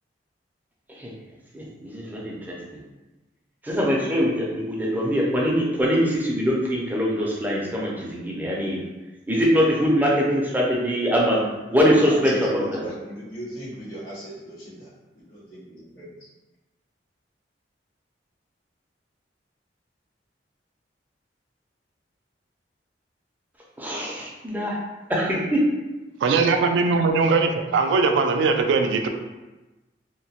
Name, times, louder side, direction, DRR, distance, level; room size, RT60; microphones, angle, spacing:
voice 1, 1.5-2.8 3.6-8.8 9.3-11.4 11.7-12.8 23.8-24.8 25.1-25.6, equal, 10° right, -4 dB, 0.5 m, -23 dB
voice 2, 11.8-14.9 15.3-16.3, right 1 dB, 90° left, -10 dB, 1.4 m, -38 dB
voice 3, 26.2-29.1, right 4 dB, 80° right, 5 dB, 0.3 m, -20 dB
2.8 x 2.1 x 2.8 m, 1.1 s
head